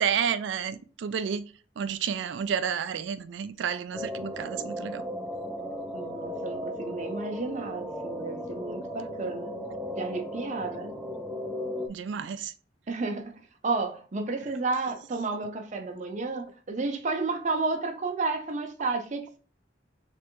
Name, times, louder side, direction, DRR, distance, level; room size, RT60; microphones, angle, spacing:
voice 1, 0.0-5.0 11.9-12.5, right 7 dB, 80° right, 0.3 m, -31 dB
sound 1, 3.9-11.9, equal, ahead, 0.4 m, -36 dB
voice 2, 5.9-9.6 9.9-10.9 12.9-13.3 13.6-19.4, right 3 dB, 40° right, 0.6 m, -32 dB
3.4 x 3.1 x 3.0 m
head